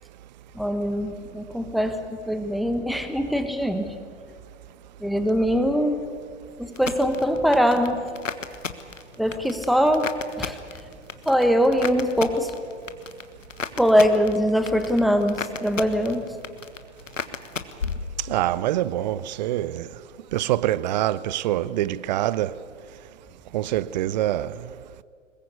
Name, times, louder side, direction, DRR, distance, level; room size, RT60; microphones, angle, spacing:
voice 1, 0.5-2.0 2.3-3.9 5.0-6.0 6.6-8.0 9.2-10.1 10.4-10.6 11.2-12.5 13.8-16.2, equal, ahead, 1.3 m, -22 dB
sound 1, 6.8-18.7 19.0-19.5, left 5 dB, 80° left, 1.4 m, -35 dB
voice 2, 18.2-19.9 20.3-22.6 23.5-24.6, right 13 dB, 35° right, 0.6 m, -25 dB
22.0 x 21.0 x 8.3 m
figure-of-eight pair, 110°, 38 cm